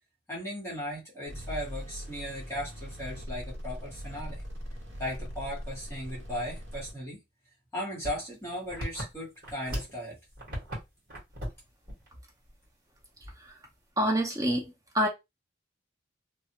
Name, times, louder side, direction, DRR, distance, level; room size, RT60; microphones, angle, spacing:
voice 1, 0.3-4.4 5.0-7.2 7.7-10.2, equal, 15° left, 1.1 m, -37 dB
sound 1, 1.3-6.9, equal, 75° right, 1.6 m, -40 dB
sound 2, 8.0-10.0 10.3-10.8 11.1-11.6 11.9-12.1 12.5-12.6 13.2-13.6, equal, 50° right, 1.5 m, -37 dB
voice 2, 14.0-15.1, equal, 20° right, 0.6 m, -27 dB
2.6 x 2.4 x 2.8 m
head